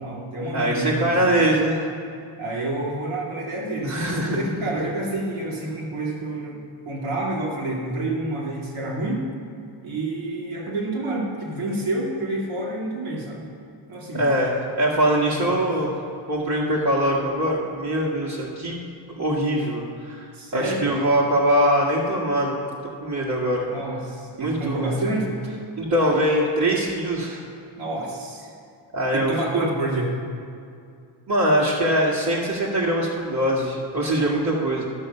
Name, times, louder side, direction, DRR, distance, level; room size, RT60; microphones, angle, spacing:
voice 1, 0.0-1.4 2.4-4.0 4.3-9.3 9.8-13.4 13.9-14.3 15.3-15.7 20.3-21.0 23.7-25.5 27.8-28.5 29.1-30.2, right 2 dB, 75° right, -2 dB, 2.6 m, -28 dB
voice 2, 0.5-1.8 3.8-4.5 14.1-14.5 14.8-15.9 16.3-18.8 19.2-22.5 23.0-23.7 24.4-25.0 25.8-27.4 28.9-29.3 31.3-34.8, right 1 dB, 45° right, -7 dB, 1.9 m, -22 dB
13.0 x 6.4 x 5.6 m, 2.5 s
cardioid pair, 90°, 48 cm